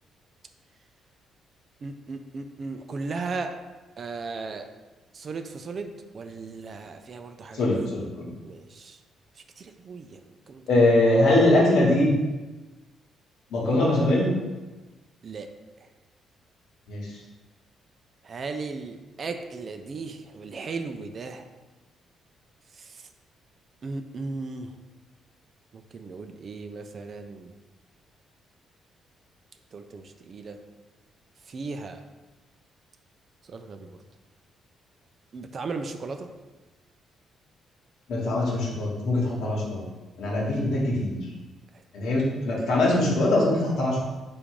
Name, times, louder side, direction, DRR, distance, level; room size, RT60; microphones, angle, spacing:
voice 1, 1.8-3.5 4.0-4.7 5.1-7.6 8.4-9.0 9.6-10.2 10.5-10.6 15.2-15.5 18.2-21.4 23.8-24.7 25.7-27.5 29.7-30.6 31.5-32.0 33.5-33.9 35.3-36.3, right 4 dB, 45° right, 7 dB, 0.4 m, -36 dB
voice 2, 7.5-8.3 10.7-12.1 13.5-14.3 16.9-17.1 38.1-39.8 40.2-41.2 41.9-44.0, left 1 dB, 80° left, -4 dB, 1.1 m, -22 dB
3.6 x 2.5 x 4.6 m, 1.2 s
cardioid pair, 90°, 0 cm